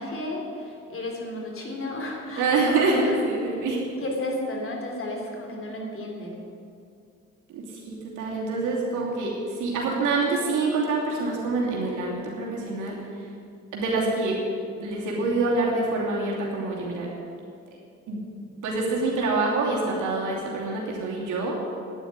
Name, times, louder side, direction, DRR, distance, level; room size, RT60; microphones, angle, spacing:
voice 1, 0.0-3.3 4.0-6.4, left 1 dB, 45° left, 0 dB, 3.5 m, -32 dB
voice 2, 2.4-3.8 7.5-9.3 9.6-12.9 13.7-14.4 14.8-17.1 18.1-18.2 18.6-21.5, right 3 dB, 80° right, -3 dB, 2.9 m, -26 dB
9.7 x 9.1 x 9.5 m, 2.5 s
supercardioid pair, 65°, 30 cm